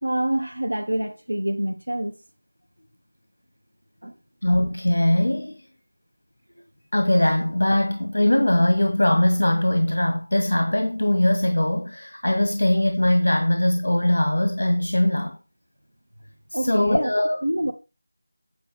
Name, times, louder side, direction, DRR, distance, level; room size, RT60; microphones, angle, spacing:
voice 1, 0.0-2.1 4.0-4.1 16.5-17.1 17.4-17.7, right 1 dB, 75° right, 1.5 m, -26 dB
voice 2, 4.4-5.6 6.9-15.4 16.6-17.4, left 1 dB, 60° left, 1.9 m, -21 dB
9.1 x 5.1 x 5.1 m
figure-of-eight pair, 165°, 0 cm